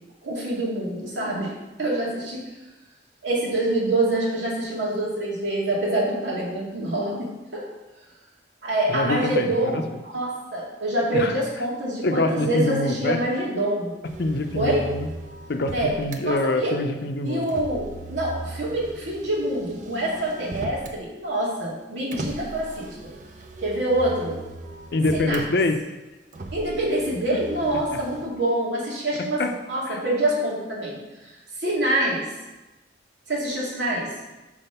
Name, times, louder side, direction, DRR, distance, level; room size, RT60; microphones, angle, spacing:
voice 1, 0.2-1.5 1.8-2.4 3.2-7.3 7.5-7.7 8.6-13.9 14.5-14.9 15.7-16.0 16.2-16.7 17.2-23.0 23.6-24.4 25.1-25.4 26.5-29.4 29.7-31.0 31.6-32.2 33.3-34.1, right 1 dB, 90° right, -5 dB, 2.3 m, -25 dB
voice 2, 8.9-9.8 11.1-11.3 12.0-13.2 14.2-15.1 15.5-17.5 24.9-26.0 29.4-29.5 29.9-30.0, left 2 dB, 60° left, 6 dB, 0.6 m, -25 dB
Motor vehicle (road), 14.0-16.2 17.4-21.0 22.1-25.5 26.3-28.3, right 2 dB, 45° right, 0.6 m, -38 dB
5.3 x 4.9 x 5.6 m, 1.1 s
head